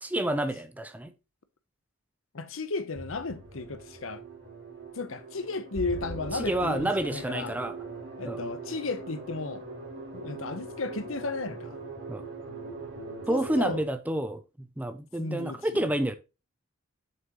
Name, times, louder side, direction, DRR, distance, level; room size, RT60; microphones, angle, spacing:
voice 1, 0.0-1.1 6.3-7.8 8.2-8.4 12.1-12.2 13.3-16.2, right 1 dB, 10° right, 0.5 m, -29 dB
voice 2, 2.3-4.2 4.9-7.6 8.2-9.6 10.1-11.8 13.3-13.8 15.2-15.9, left 3 dB, 75° left, 0.8 m, -34 dB
sound 1, 2.9-13.8, right 3 dB, 55° right, 3.5 m, -41 dB
7.3 x 6.3 x 3.0 m
head